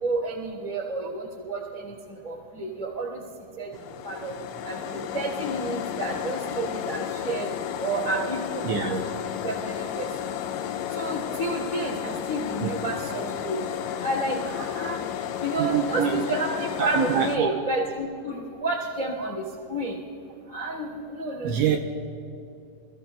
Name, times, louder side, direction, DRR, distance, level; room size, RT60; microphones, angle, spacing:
voice 1, 0.0-1.8 2.2-3.2 3.6-3.7 4.0-4.3 4.6-4.8 5.1-7.5 7.8-8.9 9.4-10.1 10.9-13.6 14.0-15.0 15.4-19.3 19.7-19.9 20.5-21.7, right 2 dB, 70° left, -3 dB, 0.3 m, -30 dB
sound 1, 3.7-17.4, left 10 dB, 90° left, 2.6 m, -32 dB
voice 2, 8.6-9.0 12.6-12.7 15.6-16.2 16.8-17.5 21.4-21.8, right 8 dB, 85° right, 3 dB, 2.6 m, -25 dB
29.0 x 15.0 x 2.3 m, 2.7 s
omnidirectional pair, 5.7 m